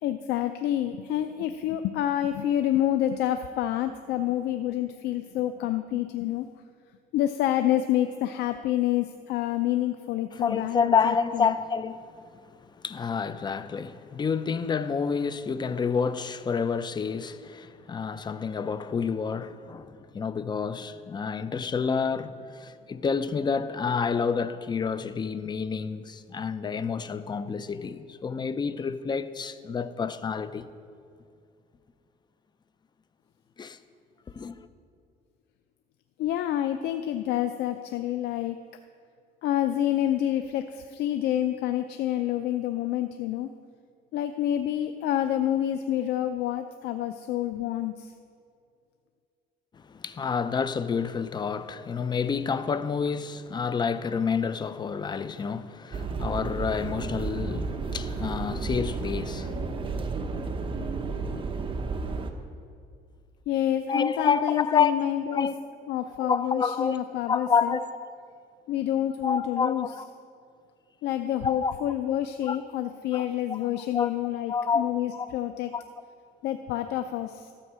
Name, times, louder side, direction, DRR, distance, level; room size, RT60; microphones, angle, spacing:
voice 1, 0.0-6.5 7.1-11.6 36.2-38.6 39.4-43.5 44.1-48.1 63.5-65.5 65.9-67.8 68.7-69.9 71.0-75.7 76.4-77.5, left 12 dB, 80° left, 0.5 m, -28 dB
voice 2, 10.3-30.7 33.6-33.8 34.3-34.7 49.7-59.6 63.9-65.0 65.3-65.5 66.2-67.0 67.3-68.1 69.2-70.1 71.4-71.7 72.4-72.6 73.1-74.1 74.5-74.9 75.1-75.3 75.7-75.8, left 6 dB, 25° left, 0.5 m, -29 dB
sound 1, 55.9-62.3, right 4 dB, 30° right, 0.9 m, -32 dB
13.0 x 5.7 x 7.4 m
cardioid pair, 110°, 17 cm